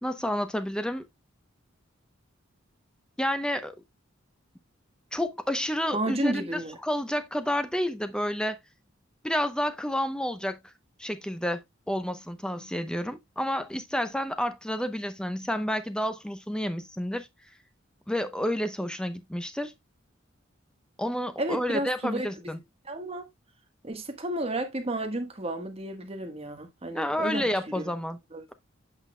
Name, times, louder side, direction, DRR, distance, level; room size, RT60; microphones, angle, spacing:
voice 1, 0.0-1.0 3.2-3.7 5.1-8.6 9.2-10.6 11.0-17.3 18.1-19.7 21.0-22.6 26.9-28.2, equal, 5° left, 0.7 m, -30 dB
voice 2, 5.9-6.8 21.4-22.6 22.9-23.3 23.8-27.9 28.3-28.4, right 1 dB, 30° right, 1.3 m, -32 dB
8.3 x 6.0 x 2.2 m
head